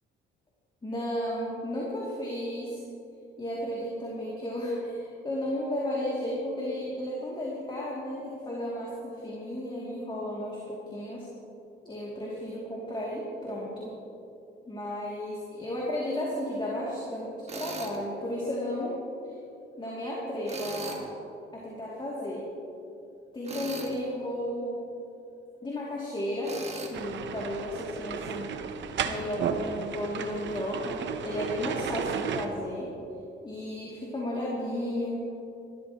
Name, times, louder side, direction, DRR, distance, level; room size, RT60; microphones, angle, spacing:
voice 1, 0.8-2.8 3.4-11.3 11.8-13.9 14.7-19.0 19.2-19.3 19.8-21.1 21.5-22.4 23.3-24.8 25.6-26.6 26.8-28.5 29.0-32.9 33.4-35.2, left 1 dB, 25° left, -5 dB, 2.8 m, -33 dB
Tools, 17.5-18.0 20.5-21.0 23.4-24.0 26.4-26.9, right 3 dB, 35° right, 1.8 m, -38 dB
sound 1, 26.9-32.5, right 7 dB, 65° right, 0.9 m, -34 dB
20.0 x 13.5 x 3.1 m, 2.8 s
cardioid pair, 90°, 20 cm